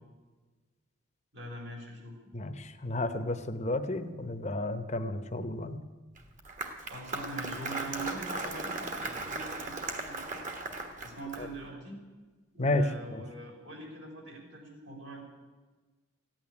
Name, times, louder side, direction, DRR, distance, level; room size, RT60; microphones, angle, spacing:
voice 1, 1.3-2.2 6.8-10.4 11.0-12.0 12.5-15.2, right 2 dB, 75° right, 0 dB, 4.4 m, -42 dB
voice 2, 2.3-5.8 11.4-11.5 12.6-12.8 13.1-13.2, left 2 dB, 35° left, 9 dB, 0.9 m, -32 dB
Applause, 6.2-11.6, right 2 dB, 40° right, 1.4 m, -38 dB
15.0 x 9.0 x 9.7 m, 1.3 s
head